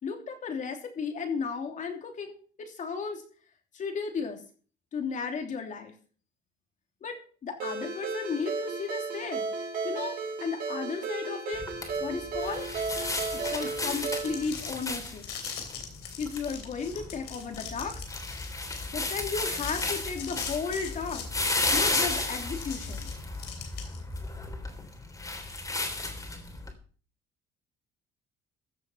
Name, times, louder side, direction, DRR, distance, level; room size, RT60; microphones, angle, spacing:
voice 1, 0.0-3.2 3.7-4.4 4.9-5.9 7.0-9.4 9.8-10.1 10.4-11.6 12.0-12.7 13.3-15.2 16.2-18.0 18.9-21.3 21.7-23.1, left 5 dB, 45° left, 4 dB, 3.0 m, -34 dB
Ringtone, 7.6-14.5, right 4 dB, 60° right, 5.1 m, -34 dB
sound 1, 11.5-26.7, left 2 dB, 20° left, 3.3 m, -34 dB
sound 2, 13.6-24.2, left 8 dB, 90° left, 3.2 m, -42 dB
15.0 x 7.2 x 5.6 m, 0.42 s
cardioid pair, 110°, 17 cm